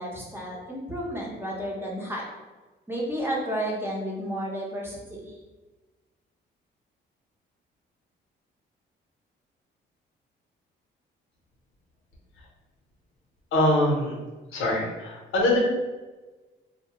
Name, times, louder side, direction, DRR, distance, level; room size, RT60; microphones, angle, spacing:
voice 1, 0.0-2.2 2.9-5.3, equal, 10° right, -3 dB, 0.7 m, -32 dB
voice 2, 13.5-14.1 14.5-15.6, left 1 dB, 90° left, -2 dB, 0.8 m, -23 dB
2.6 x 2.0 x 2.9 m, 1.2 s
cardioid pair, 90°, 20 cm